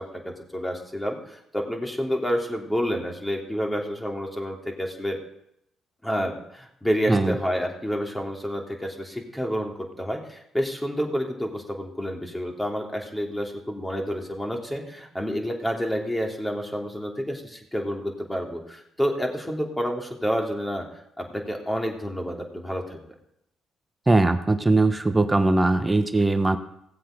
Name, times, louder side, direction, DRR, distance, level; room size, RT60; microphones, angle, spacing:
voice 1, 0.0-5.2 6.0-20.9 21.2-23.0, equal, 10° left, 1 dB, 3.1 m, -29 dB
voice 2, 24.1-26.6, right 2 dB, 20° right, 9 dB, 1.1 m, -20 dB
17.5 x 7.7 x 5.2 m, 0.78 s
supercardioid pair, 55°, 0 cm